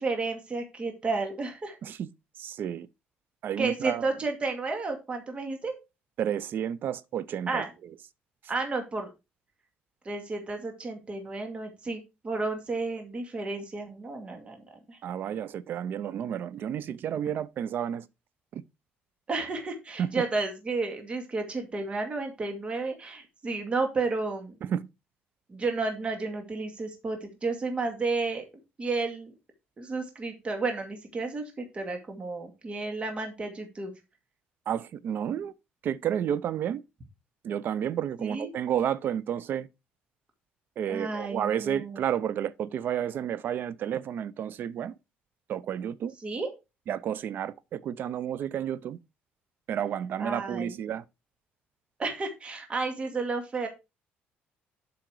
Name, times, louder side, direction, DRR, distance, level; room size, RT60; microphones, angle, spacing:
voice 1, 0.0-1.8 3.6-5.7 7.5-7.7 8.5-9.1 10.1-15.0 19.3-24.6 25.5-28.4 28.8-29.3 29.8-33.9 38.2-38.5 40.9-42.0 46.2-46.5 50.2-50.7 52.0-53.7, right 3 dB, 30° right, 2.2 m, -32 dB
voice 2, 2.4-2.9 3.4-4.0 6.2-7.6 15.0-18.1 18.5-18.6 20.0-20.2 24.6-24.9 34.7-35.5 35.8-36.8 37.4-39.7 40.8-45.0 45.5-46.1 46.9-49.0 49.7-51.0, right 9 dB, 55° right, 0.6 m, -31 dB
7.8 x 5.7 x 4.7 m
cardioid pair, 115°, 4 cm